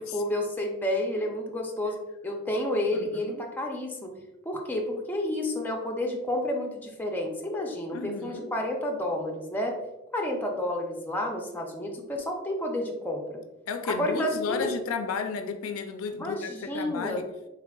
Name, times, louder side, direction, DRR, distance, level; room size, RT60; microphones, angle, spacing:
voice 1, 0.0-2.0 2.2-4.1 4.5-9.8 10.1-13.4 13.9-14.7 16.2-17.2, left 1 dB, 10° left, 0 dB, 0.4 m, -30 dB
voice 2, 2.9-3.4 7.9-8.5 13.7-17.3, left 5 dB, 75° left, 8 dB, 0.4 m, -33 dB
3.6 x 3.4 x 2.2 m, 0.97 s
head